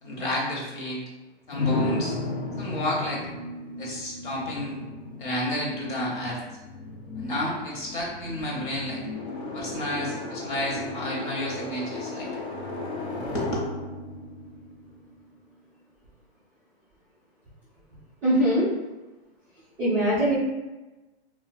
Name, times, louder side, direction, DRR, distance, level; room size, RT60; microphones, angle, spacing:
voice 1, 0.0-1.0 1.5-2.2 2.6-3.2 3.8-4.8 5.2-6.4 7.2-9.0 9.5-12.3 13.3-13.6, left 1 dB, 50° left, -4 dB, 0.9 m, -31 dB
sound 1, 1.5-15.3, left 2 dB, 80° left, 0.7 m, -34 dB
voice 2, 18.2-18.7 19.8-20.4, equal, 5° right, -18 dB, 0.3 m, -21 dB
2.3 x 2.2 x 2.5 m, 1.1 s
hypercardioid pair, 160°, 32 cm